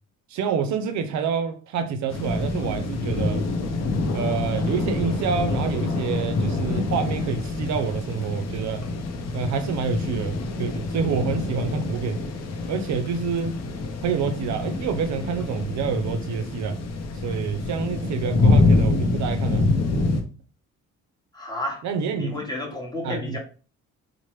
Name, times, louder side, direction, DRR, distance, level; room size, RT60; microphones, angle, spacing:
voice 1, 0.3-3.4 4.1-8.9 9.3-12.2 12.7-13.6 14.0-16.8 17.2-19.7 21.8-22.4 23.0-23.4, right 6 dB, 70° right, 0.4 m, -27 dB
sound 1, 2.1-20.2, left 3 dB, 60° left, 0.6 m, -26 dB
voice 2, 21.3-21.8 22.1-23.4, left 1 dB, 15° left, 1.0 m, -31 dB
3.0 x 2.1 x 3.0 m
cardioid pair, 90°, 30 cm